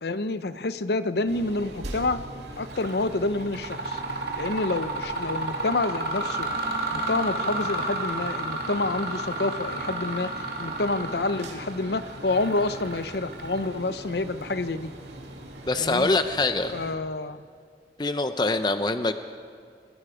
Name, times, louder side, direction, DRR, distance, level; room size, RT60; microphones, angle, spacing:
voice 1, 0.0-2.2 2.6-4.0 4.4-6.5 6.9-10.3 10.6-14.9 15.8-16.1 16.7-17.4, left 2 dB, 70° left, 12 dB, 0.8 m, -28 dB
sound 1, 1.3-16.9, right 1 dB, 90° right, 2.7 m, -42 dB
Mechanisms, 2.7-3.0 3.4-14.0, right 2 dB, 60° right, 2.7 m, -32 dB
voice 2, 15.6-16.7 18.0-19.1, left 2 dB, 25° left, 9 dB, 0.6 m, -24 dB
28.0 x 20.5 x 5.0 m, 2.2 s
head